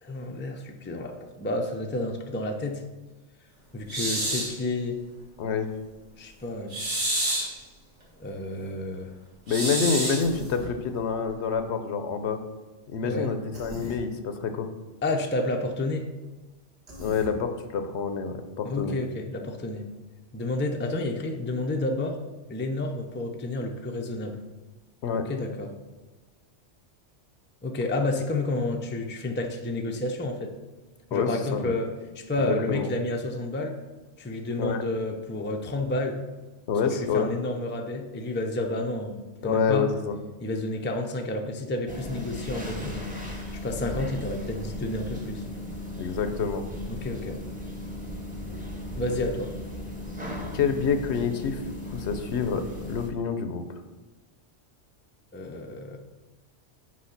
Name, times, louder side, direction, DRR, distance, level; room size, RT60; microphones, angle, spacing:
voice 1, 0.0-2.8 3.7-5.0 6.2-6.8 8.2-9.1 13.0-13.3 15.0-16.1 18.6-19.9 20.3-22.2 22.5-24.4 25.1-25.7 27.6-30.5 31.1-31.9 32.1-33.8 34.2-36.2 37.0-39.9 40.4-43.1 43.6-45.4 46.9-47.4 49.0-49.5 55.3-56.0, left 2 dB, 15° left, 3 dB, 0.4 m, -30 dB
sound 1, 3.9-4.6 6.7-7.6 9.5-10.3, right 1 dB, 75° right, 2.4 m, -28 dB
voice 2, 9.5-12.4 12.9-14.7 17.0-19.0 25.0-25.3 31.1-31.7 32.4-32.9 34.6-34.8 36.7-37.3 39.4-40.2 46.0-46.6 50.5-53.6, left 6 dB, 70° left, 8 dB, 0.9 m, -27 dB
Human voice, 10.2-10.7 13.5-14.0 16.9-17.3, equal, 60° right, 1.5 m, -40 dB
sound 2, 41.9-53.1, left 1 dB, 5° right, 1.0 m, -36 dB
6.4 x 4.8 x 5.8 m, 1.2 s
omnidirectional pair, 1.2 m